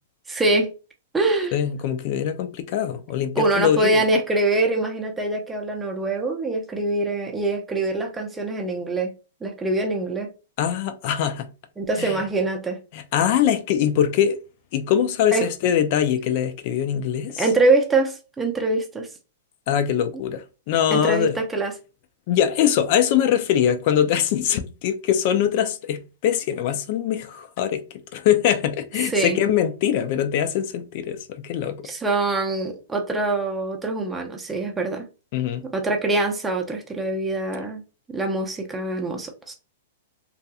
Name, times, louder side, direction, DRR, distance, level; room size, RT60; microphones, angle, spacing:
voice 1, 0.3-0.7 1.1-1.5 3.4-9.1 9.4-10.3 11.8-12.8 15.3-15.5 17.4-19.1 20.9-21.7 29.0-29.4 31.8-35.0 35.7-37.8 38.1-39.5, right 2 dB, 10° right, 0.7 m, -24 dB
voice 2, 1.5-4.0 10.6-11.5 12.0-12.2 12.9-14.4 14.7-17.4 19.7-21.4 22.3-27.8 28.1-31.9 35.3-35.6, left 9 dB, 50° left, 0.4 m, -22 dB
2.6 x 2.4 x 2.3 m
hypercardioid pair, 125°, 0 cm